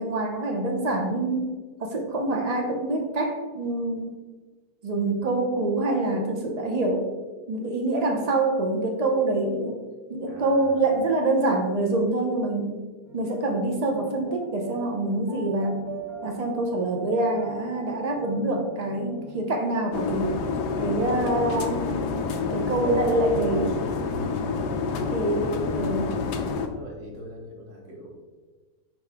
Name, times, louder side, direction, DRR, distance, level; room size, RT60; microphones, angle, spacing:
voice 1, 0.0-4.2 4.8-7.1 7.5-9.8 10.1-12.8 13.1-15.8 16.2-20.3 20.8-23.8 25.1-26.1, right 2 dB, 70° right, 3 dB, 0.3 m, -26 dB
voice 2, 10.3-11.0 24.0-24.8 25.2-25.6 26.7-28.1, right 1 dB, 50° right, -2 dB, 1.6 m, -42 dB
sound 1, 13.0-23.8, right 5 dB, 25° right, 0.7 m, -42 dB
sound 2, 19.9-26.7, left 5 dB, 90° left, 1.2 m, -28 dB
6.2 x 4.8 x 3.5 m, 1.3 s
omnidirectional pair, 1.8 m